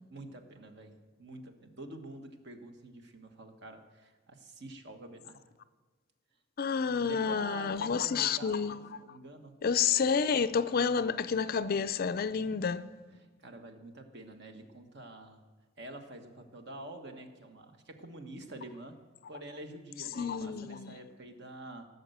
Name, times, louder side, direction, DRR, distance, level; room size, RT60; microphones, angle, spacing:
voice 1, 0.1-0.9 1.2-5.4 7.0-9.5 12.4-12.6 13.2-15.4 15.8-19.0 19.3-21.8, right 2 dB, 55° right, 1.4 m, -47 dB
voice 2, 6.6-8.8 9.1-9.2 9.6-12.8 20.1-21.0, left 6 dB, 45° left, 0.4 m, -29 dB
16.5 x 6.7 x 8.0 m
head